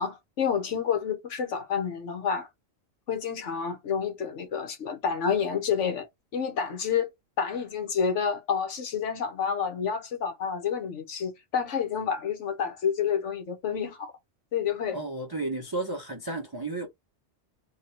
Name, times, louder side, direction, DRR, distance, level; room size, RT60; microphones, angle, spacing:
voice 1, 0.0-2.5 3.1-6.1 6.3-7.1 7.4-14.1 14.5-15.0, left 7 dB, 70° left, 1.3 m, -29 dB
voice 2, 14.9-16.9, right 2 dB, 25° right, 0.6 m, -33 dB
2.9 x 2.9 x 4.0 m
omnidirectional pair, 1.3 m